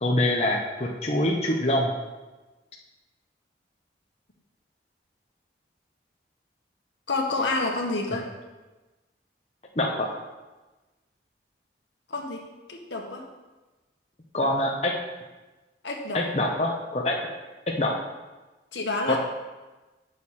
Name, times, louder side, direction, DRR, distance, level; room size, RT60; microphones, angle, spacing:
voice 1, 0.0-1.9 9.8-10.2 14.3-15.0 16.1-17.2 17.7-18.0 19.0-19.2, left 1 dB, 35° left, -1 dB, 0.8 m, -25 dB
voice 2, 7.1-8.3 12.1-13.3 15.8-16.2 18.7-19.2, left 2 dB, 85° left, 1 dB, 1.4 m, -29 dB
9.1 x 6.5 x 4.2 m, 1.2 s
head